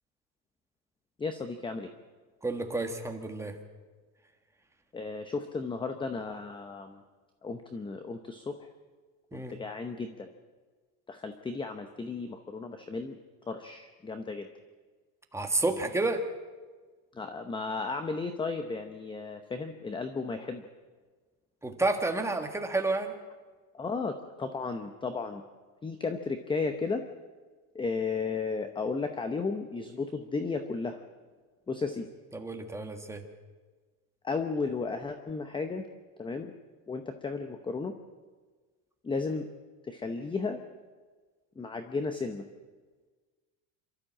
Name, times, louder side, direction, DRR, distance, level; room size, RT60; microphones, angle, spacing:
voice 1, 1.2-1.9 4.9-7.0 7.4-8.7 9.3-10.3 11.1-13.2 13.5-14.5 17.1-20.6 23.7-25.4 25.8-27.0 27.7-31.0 31.7-32.1 34.2-35.8 36.2-36.5 36.9-37.9 39.0-39.5 39.8-40.6 41.6-42.5, left 4 dB, 10° left, 8 dB, 0.8 m, -34 dB
voice 2, 2.4-3.6 9.3-9.6 15.3-16.2 21.6-23.1 32.3-33.2, right 2 dB, 5° right, 4 dB, 1.6 m, -30 dB
27.0 x 13.0 x 7.4 m, 1.4 s
cardioid pair, 145°, 42 cm